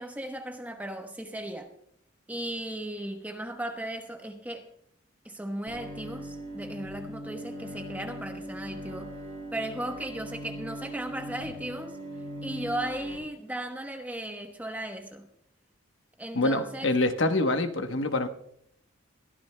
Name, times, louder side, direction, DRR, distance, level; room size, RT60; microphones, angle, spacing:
voice 1, 0.0-1.7 2.3-4.7 5.2-9.1 9.5-12.0 12.4-15.3 16.2-16.9, right 1 dB, 10° right, 1.0 m, -36 dB
Bowed string instrument, 5.7-13.2, equal, 75° right, 5.3 m, -40 dB
voice 2, 16.3-18.3, left 2 dB, 70° left, 1.0 m, -25 dB
22.0 x 14.0 x 2.2 m
head